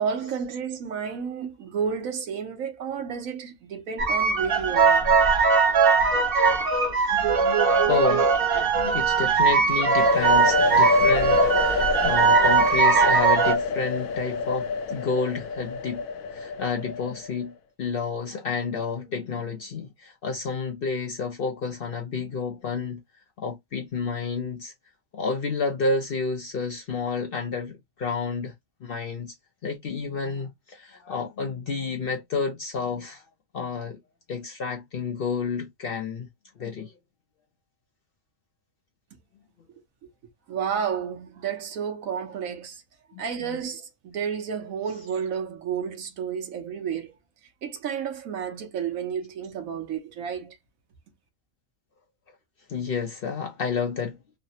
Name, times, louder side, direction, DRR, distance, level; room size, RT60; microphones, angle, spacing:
voice 1, 0.0-5.0 40.0-40.1 40.5-42.8 43.2-47.1 47.6-50.6, right 7 dB, 80° right, 1.2 m, -31 dB
sound 1, 4.0-13.5, right 5 dB, 50° right, 0.9 m, -20 dB
voice 2, 6.9-8.4 8.8-16.0 16.3-23.0 23.4-24.7 25.1-28.5 28.8-29.3 29.6-33.2 33.5-34.0 34.3-36.3 36.6-36.9 43.1-43.2 52.7-54.2, left 4 dB, 60° left, 0.6 m, -30 dB
sound 2, 9.8-17.4, left 4 dB, 80° left, 1.0 m, -26 dB
3.2 x 2.0 x 2.7 m
omnidirectional pair, 1.4 m